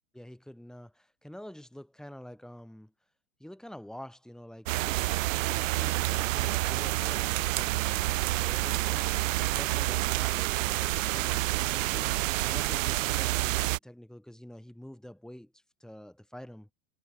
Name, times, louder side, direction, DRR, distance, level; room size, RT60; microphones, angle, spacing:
voice 1, 0.1-2.9 3.4-5.1 5.5-16.7, equal, ahead, 6.7 m, -47 dB
sound 1, 4.7-13.8, right 18 dB, 70° right, 0.6 m, -28 dB
hypercardioid pair, 115°, 41 cm